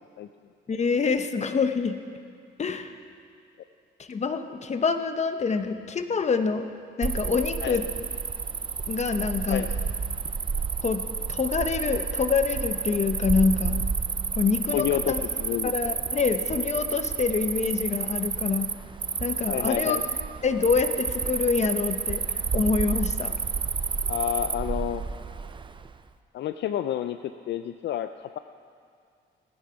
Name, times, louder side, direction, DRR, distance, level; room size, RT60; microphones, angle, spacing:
voice 1, 0.7-2.0 2.6-3.0 4.0-6.7 7.0-7.8 8.9-9.7 10.8-13.8 14.3-15.2 15.6-18.7 19.2-20.0 20.4-23.3, left 5 dB, 35° left, 9 dB, 0.9 m, -26 dB
Cricket, 7.0-25.9, right 5 dB, 25° right, 0.5 m, -30 dB
voice 2, 9.5-9.9 14.7-15.9 19.5-20.0 24.1-25.0 26.3-28.4, left 11 dB, 65° left, 10 dB, 0.4 m, -30 dB
17.0 x 10.0 x 5.1 m, 2.3 s
cardioid pair, 90°, 20 cm